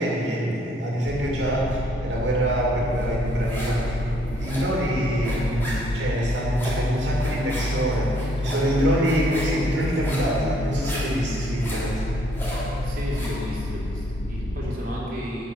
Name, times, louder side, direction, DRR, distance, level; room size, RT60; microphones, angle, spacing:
voice 1, 0.0-12.0, right 1 dB, 75° right, -3 dB, 2.3 m, -25 dB
sound 1, 1.1-14.8, left 1 dB, 80° left, 0.6 m, -29 dB
sound 2, 3.0-3.9 4.1-13.4, equal, 15° left, 3.3 m, -35 dB
voice 2, 12.8-15.5, equal, 50° right, -6 dB, 3.2 m, -33 dB
11.5 x 6.1 x 9.0 m, 2.9 s
head